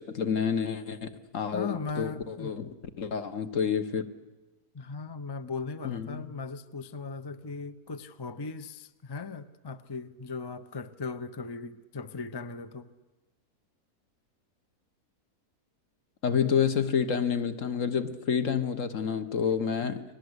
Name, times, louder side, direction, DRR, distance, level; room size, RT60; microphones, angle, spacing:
voice 1, 0.0-2.7 3.0-4.0 5.8-6.3 16.2-20.0, left 7 dB, 55° left, 10 dB, 1.5 m, -29 dB
voice 2, 1.5-2.5 4.7-12.9 19.8-19.9, left 4 dB, 25° left, 11 dB, 0.5 m, -38 dB
29.5 x 21.0 x 8.1 m, 1.2 s
omnidirectional pair, 1.7 m